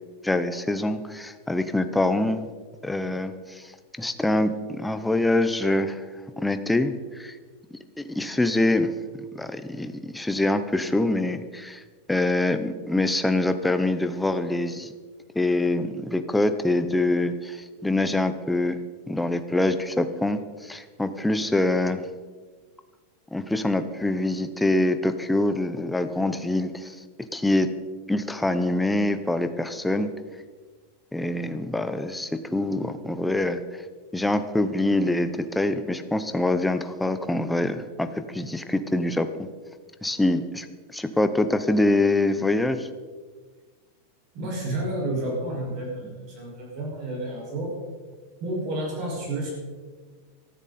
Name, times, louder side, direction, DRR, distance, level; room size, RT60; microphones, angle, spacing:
voice 1, 0.2-2.5 2.8-3.7 4.0-6.0 6.4-7.4 8.0-8.9 9.3-11.8 12.1-14.9 15.3-18.8 19.1-22.0 23.3-27.0 27.3-27.7 28.1-30.1 31.1-33.8 34.1-39.5 40.0-42.9, left 2 dB, 5° left, 9 dB, 0.7 m, -25 dB
voice 2, 44.3-47.7 48.4-49.5, right 1 dB, 35° right, -3 dB, 5.6 m, -30 dB
17.5 x 14.0 x 4.2 m, 1.5 s
supercardioid pair, 170°, 0 cm